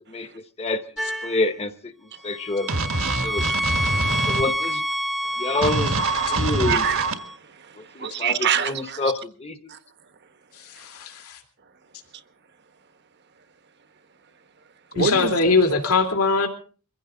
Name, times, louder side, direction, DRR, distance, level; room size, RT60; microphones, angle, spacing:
sound 1, 1.0-1.5 2.2-7.4, equal, ahead, 0.8 m, -28 dB
voice 1, 1.2-1.9 2.2-3.4 4.3-4.8 5.4-5.9 6.3-6.9 7.8-9.7, left 2 dB, 30° left, 1.0 m, -27 dB
sound 2, 2.7-4.4 5.6-7.1, right 3 dB, 65° right, 1.7 m, -24 dB
voice 2, 3.2-4.4 5.2-5.6 6.2-9.1 9.7-9.8 14.9-15.5, right 7 dB, 50° right, 1.1 m, -29 dB
voice 3, 10.8-11.4 14.9-16.5, left 3 dB, 85° left, 2.7 m, -21 dB
23.5 x 15.5 x 3.9 m
head